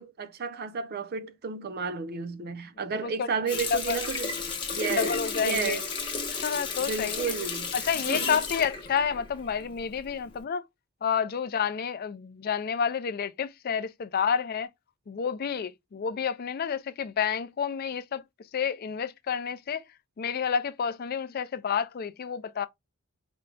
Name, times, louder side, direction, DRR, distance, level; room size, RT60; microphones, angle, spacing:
voice 1, 0.0-4.3 4.7-5.8 6.8-8.4, right 5 dB, 45° right, 0.5 m, -32 dB
voice 2, 2.9-3.3 3.7-4.0 5.0-5.8 6.4-7.2 7.7-10.6 11.0-14.7 15.1-18.2 18.5-19.8 20.2-22.7, left 7 dB, 45° left, 0.4 m, -29 dB
Water tap faucet, 3.5-9.8 10.2-10.4, left 4 dB, 25° left, 1.0 m, -33 dB
4.5 x 2.2 x 3.7 m
head